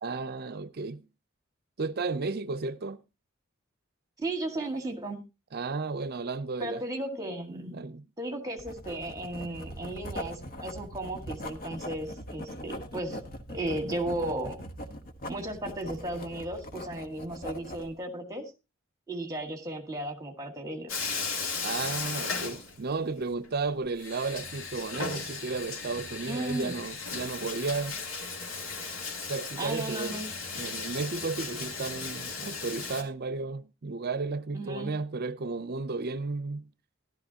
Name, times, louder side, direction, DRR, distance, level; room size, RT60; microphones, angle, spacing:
voice 1, 0.0-1.1 1.8-3.0 5.5-6.8 7.7-8.0 21.6-28.0 29.3-30.2 30.5-36.7, right 3 dB, 50° right, 0.6 m, -33 dB
voice 2, 4.2-5.2 6.6-7.8 8.2-13.2 13.5-14.6 15.3-18.5 19.1-20.9 26.3-26.7 29.6-30.3 34.5-34.9, right 1 dB, 20° right, 1.9 m, -35 dB
Writing, 8.6-17.9, equal, 45° left, 1.3 m, -41 dB
Bathtub (filling or washing), 20.9-23.2 23.4-23.5 24.0-33.0, left 4 dB, 85° left, 2.6 m, -36 dB
13.5 x 12.0 x 2.8 m
head